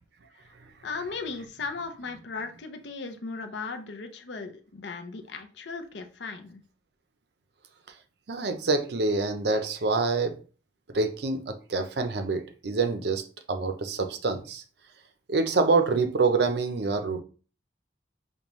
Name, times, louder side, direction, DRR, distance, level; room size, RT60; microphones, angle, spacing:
voice 1, 0.8-6.6, left 4 dB, 70° left, 0.6 m, -37 dB
voice 2, 8.3-10.3 10.9-13.2 13.5-14.6 15.3-17.2, right 3 dB, 60° right, 0.5 m, -26 dB
5.2 x 2.2 x 3.0 m
head